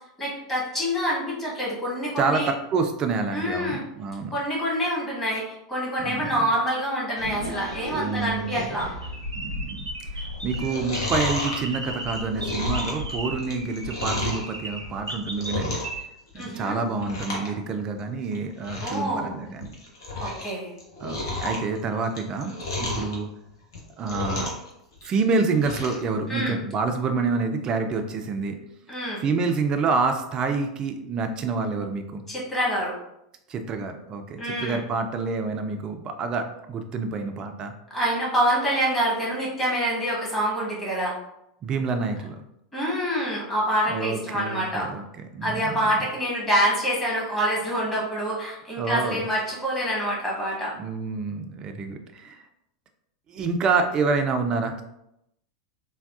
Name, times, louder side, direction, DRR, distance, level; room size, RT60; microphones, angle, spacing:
voice 1, 0.2-2.5 3.3-3.8 4.3-8.9 16.3-16.8 18.8-19.4 20.2-20.7 26.3-26.6 28.9-29.2 32.3-32.9 34.4-34.8 37.9-41.2 42.7-44.9 45.4-50.7, equal, 15° left, -6 dB, 1.4 m, -26 dB
voice 2, 2.2-4.4 6.0-6.5 7.9-8.9 9.3-9.9 10.1-15.8 16.4-19.7 21.0-22.5 22.8-23.3 24.0-24.5 25.0-28.6 29.2-32.2 33.5-37.7 41.6-42.4 43.9-45.0 45.3-46.0 48.8-49.3 50.7-52.4 53.3-54.8, right 4 dB, 30° right, 6 dB, 0.4 m, -27 dB
sound 1, 7.2-16.0, equal, 85° right, 0.5 m, -34 dB
Chewing mastication, 10.5-14.5 14.9-16.0 16.3-16.6 17.0-17.5 17.8-17.9 18.3-18.4 18.6-19.0 19.5-20.5 20.8-23.1 23.6-24.7 25.0-26.0 26.4-26.5, left 2 dB, 65° left, 0.8 m, -32 dB
3.4 x 2.2 x 2.4 m, 0.81 s
figure-of-eight pair, 85°, 3 cm